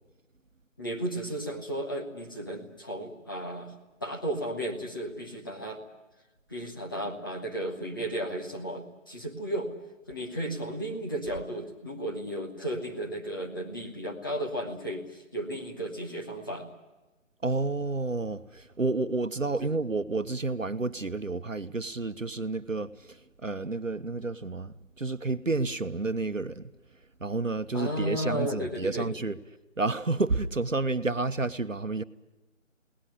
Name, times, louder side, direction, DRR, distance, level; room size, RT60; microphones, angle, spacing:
voice 1, 0.8-3.7 4.0-5.8 6.5-9.7 10.1-16.7 19.6-19.7 27.7-29.1, right 1 dB, 15° left, 1.6 m, -34 dB
voice 2, 17.4-26.7 27.2-29.4 29.8-32.0, right 3 dB, 75° right, 1.2 m, -30 dB
22.0 x 18.0 x 9.8 m
figure-of-eight pair, 160°, 39 cm